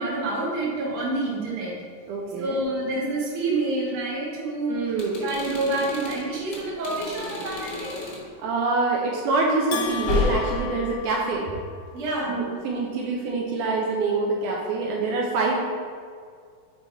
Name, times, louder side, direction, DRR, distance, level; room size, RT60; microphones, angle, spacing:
voice 1, 0.0-1.8 2.4-4.8 5.2-8.0 11.9-12.4, right 2 dB, 55° right, -4 dB, 1.7 m, -28 dB
voice 2, 2.1-2.6 4.7-5.2 8.4-11.5 12.3-15.6, right 3 dB, 80° right, -2 dB, 2.1 m, -25 dB
sound 1, 4.9-8.3 9.8-10.9, left 4 dB, 60° left, 1.1 m, -31 dB
Bell, 9.7-11.9, left 7 dB, 80° left, 1.4 m, -34 dB
5.5 x 4.5 x 4.4 m, 2.1 s
omnidirectional pair, 3.8 m